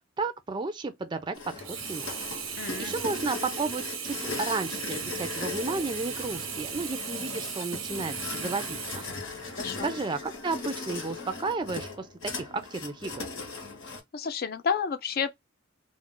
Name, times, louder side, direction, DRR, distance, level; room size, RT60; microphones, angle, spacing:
voice 1, 0.2-1.6 1.9-2.1 2.8-9.0 9.8-13.2, right 3 dB, 25° right, 0.4 m, -33 dB
sound 1, 1.3-14.0, left 3 dB, 75° left, 1.0 m, -38 dB
Sink (filling or washing), 1.6-9.8 10.4-10.5, right 7 dB, 85° right, 0.6 m, -37 dB
voice 2, 2.6-2.9 9.6-9.9 14.1-15.3, left 6 dB, 50° left, 0.4 m, -30 dB
2.4 x 2.1 x 3.6 m
head